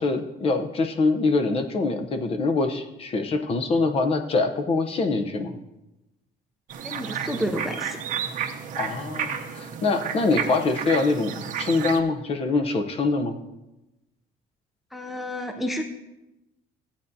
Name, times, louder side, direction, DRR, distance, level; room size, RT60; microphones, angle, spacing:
voice 1, 0.0-5.6 8.8-13.4, left 3 dB, 35° left, 7 dB, 0.7 m, -24 dB
sound 1, 6.7-12.0, right 8 dB, 50° right, 0.7 m, -32 dB
voice 2, 6.8-8.0 14.9-15.8, equal, ahead, 5 dB, 0.5 m, -30 dB
15.0 x 8.6 x 2.7 m, 0.95 s
cardioid pair, 155°, 17 cm